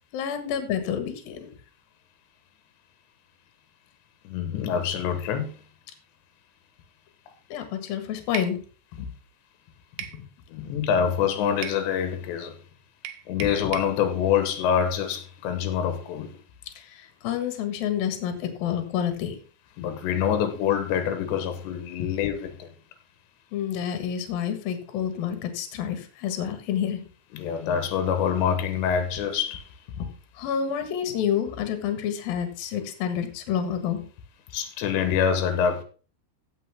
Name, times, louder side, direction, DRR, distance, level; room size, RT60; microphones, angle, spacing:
voice 1, 0.1-1.5 7.5-8.6 9.0-9.1 10.0-10.2 13.4-13.5 16.8-19.4 22.0-22.1 23.5-27.0 30.0-30.1 30.3-34.0, left 9 dB, 65° left, 3.1 m, -29 dB
voice 2, 4.3-5.6 10.5-12.6 13.3-16.3 19.8-22.7 27.3-29.7 34.5-35.8, left 8 dB, 85° left, 3.5 m, -26 dB
sound 1, 8.3-8.6 10.0-10.2 11.6-11.8 13.0-13.9, right 10 dB, 85° right, 3.0 m, -36 dB
15.5 x 6.6 x 3.5 m
omnidirectional pair, 4.9 m